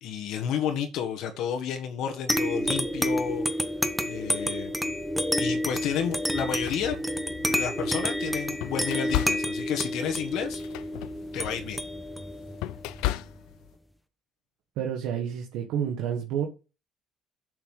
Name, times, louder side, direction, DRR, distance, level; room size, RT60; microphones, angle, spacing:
voice 1, 0.0-3.4 4.1-4.7 5.4-7.0 7.5-10.6 11.3-11.8, left 8 dB, 70° left, 1.5 m, -31 dB
sound 1, 2.3-13.4, equal, ahead, 1.1 m, -29 dB
sound 2, 5.5-5.7 6.3-7.7 8.2-13.7, left 16 dB, 90° left, 0.5 m, -35 dB
voice 2, 14.8-16.5, right 8 dB, 80° right, 1.5 m, -29 dB
7.7 x 6.7 x 5.5 m
cardioid pair, 115°, 0 cm